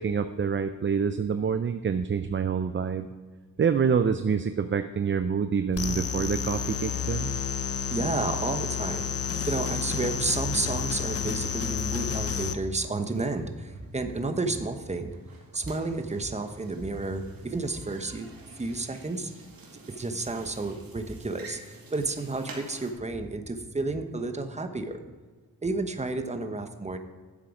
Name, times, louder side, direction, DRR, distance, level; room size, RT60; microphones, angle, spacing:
voice 1, 0.0-3.1 3.6-7.4, right 6 dB, 35° right, 10 dB, 0.5 m, -27 dB
sound 1, 5.7-12.5, left 7 dB, 45° left, 0.7 m, -30 dB
voice 2, 7.9-15.1 15.5-19.3 19.9-25.0 25.6-27.0, right 3 dB, 20° right, 7 dB, 1.0 m, -31 dB
sound 2, 9.2-22.9, right 3 dB, 80° right, 2.3 m, -51 dB
11.0 x 7.5 x 4.9 m, 1.5 s
cardioid pair, 90°, 35 cm